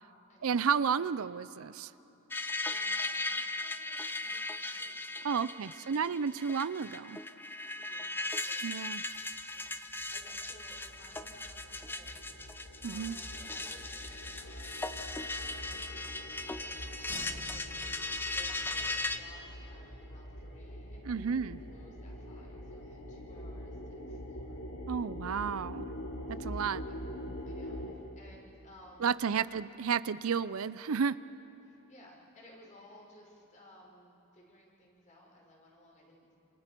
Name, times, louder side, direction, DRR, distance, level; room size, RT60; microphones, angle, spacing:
voice 1, 0.4-1.9 5.2-7.2 8.6-9.0 12.8-13.2 21.0-21.6 24.9-25.8 26.3-26.8 29.0-31.1, right 6 dB, 65° right, 16 dB, 0.5 m, -32 dB
sound 1, 2.3-19.2, left 2 dB, 10° left, 0.7 m, -38 dB
voice 2, 2.4-6.4 7.7-8.6 9.0-9.2 9.5-12.3 12.8-15.0 15.5-17.8 18.3-24.6 26.3-27.0 27.2-29.6 31.6-36.4, left 1 dB, 35° left, -2 dB, 5.4 m, -59 dB
sound 2, 9.4-9.5 9.6-27.9, equal, 85° left, 3.0 m, -45 dB
Slam, 17.1-19.0, right 1 dB, 40° right, 1.4 m, -51 dB
28.5 x 28.0 x 5.3 m, 3.0 s
head